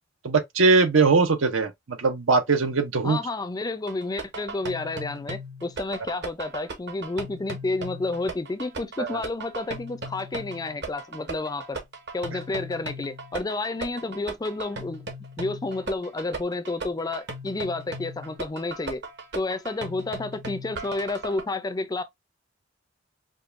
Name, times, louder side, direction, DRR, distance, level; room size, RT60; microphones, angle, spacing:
voice 1, 0.2-3.2 9.0-9.2, right 4 dB, 80° right, 0.7 m, -21 dB
voice 2, 3.0-11.8 12.1-15.1 15.4-19.0 19.3-22.0, left 2 dB, 20° left, 0.4 m, -30 dB
sound 1, 3.9-21.4, right 2 dB, 60° right, 1.1 m, -37 dB
5.1 x 2.2 x 2.4 m
head